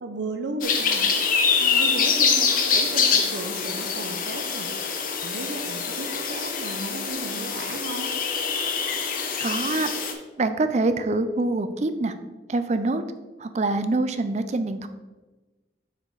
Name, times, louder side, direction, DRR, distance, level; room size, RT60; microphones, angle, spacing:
voice 1, 0.0-1.2 1.6-4.7 5.2-8.1, right 2 dB, 85° right, 5 dB, 0.6 m, -34 dB
sound 1, 0.6-10.1, left 5 dB, 50° left, 0.7 m, -25 dB
voice 2, 9.4-9.9 10.4-12.1 12.5-13.0 13.4-14.9, right 2 dB, 40° right, 10 dB, 0.4 m, -25 dB
6.6 x 4.9 x 3.9 m, 1.2 s
head